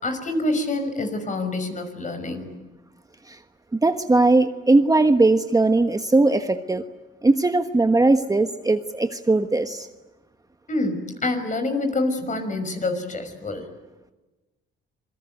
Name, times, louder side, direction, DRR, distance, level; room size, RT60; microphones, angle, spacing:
voice 1, 0.0-2.5 10.7-13.7, left 2 dB, 40° left, 8 dB, 5.8 m, -26 dB
voice 2, 3.8-6.8 7.2-9.9, right 2 dB, 15° right, 8 dB, 1.3 m, -19 dB
27.5 x 22.5 x 9.2 m, 1.1 s
cardioid pair, 90°, 20 cm